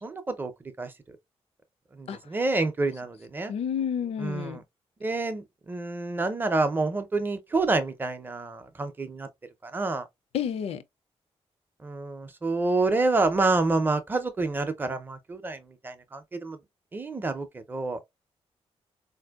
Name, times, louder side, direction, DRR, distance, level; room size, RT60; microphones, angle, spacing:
voice 1, 0.0-0.5 0.8-1.2 1.9-3.5 4.2-4.6 5.0-9.3 9.6-10.1 11.8-16.6 16.9-18.0, right 3 dB, 20° right, 0.5 m, -28 dB
voice 2, 3.5-4.6 10.3-10.8, left 8 dB, 70° left, 0.5 m, -30 dB
4.1 x 2.6 x 2.3 m
wide cardioid pair, 170°, 11 cm